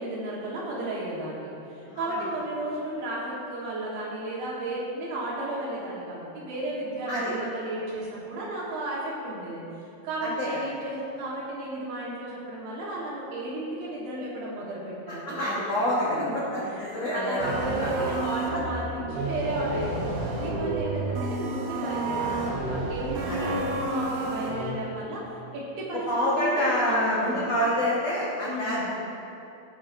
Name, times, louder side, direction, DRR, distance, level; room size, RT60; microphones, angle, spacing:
voice 1, 0.0-9.7 10.0-15.4 16.0-25.2 25.5-27.5 28.4-28.9, right 1 dB, 65° right, -5 dB, 2.8 m, -33 dB
voice 2, 15.2-16.2 16.5-17.9 23.3-23.4 26.1-28.9, equal, 75° left, -8 dB, 1.4 m, -27 dB
sound 1, 17.4-24.7, right 2 dB, 90° right, 3.3 m, -30 dB
15.5 x 6.6 x 2.5 m, 2.8 s
omnidirectional pair, 4.9 m